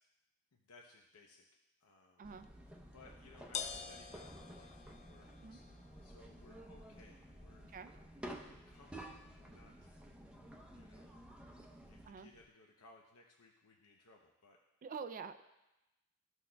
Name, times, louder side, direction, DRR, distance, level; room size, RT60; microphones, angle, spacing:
voice 1, 0.5-1.4 1.8-2.3 2.8-5.6 6.0-7.7 8.4-9.9 10.7-11.2 11.6-14.6, left 3 dB, 85° left, 0 dB, 0.8 m, -63 dB
sound 1, 2.2-12.1, right 1 dB, 5° right, 0.7 m, -53 dB
sound 2, 2.4-12.5, left 7 dB, 30° left, 0.4 m, -52 dB
voice 2, 14.8-15.5, right 5 dB, 35° right, 9 dB, 0.4 m, -46 dB
14.5 x 6.2 x 2.3 m, 0.97 s
head